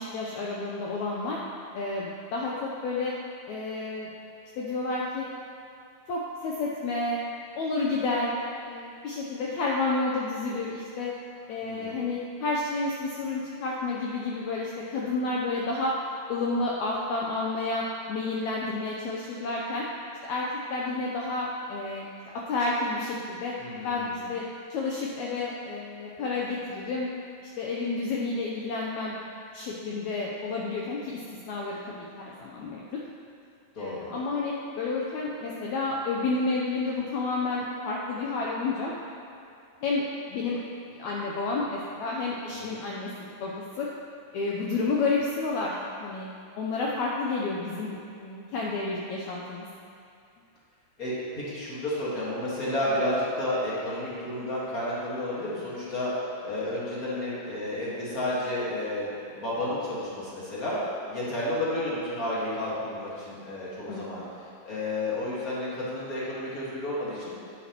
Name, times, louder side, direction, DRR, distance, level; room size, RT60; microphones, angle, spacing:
voice 1, 0.0-1.4 1.7-3.1 3.5-4.1 4.6-5.3 6.1-7.2 7.6-11.1 11.5-15.9 16.3-19.8 20.2-22.1 22.5-23.5 23.8-24.4 24.7-27.1 27.4-29.1 29.5-31.2 31.5-32.8 33.8-38.9 39.8-40.0 40.3-40.6 40.9-43.1 43.4-43.5 43.8-43.9 44.3-46.3 46.6-49.7 63.9-64.3, left 3 dB, 80° left, -4 dB, 1.7 m, -30 dB
voice 2, 11.6-11.9 23.6-24.3 33.7-34.2 42.6-42.8 51.0-56.1 56.4-60.8 61.1-64.2 64.6-67.4, left 1 dB, 40° left, -8 dB, 1.3 m, -31 dB
10.0 x 7.2 x 2.9 m, 2.5 s
omnidirectional pair, 3.9 m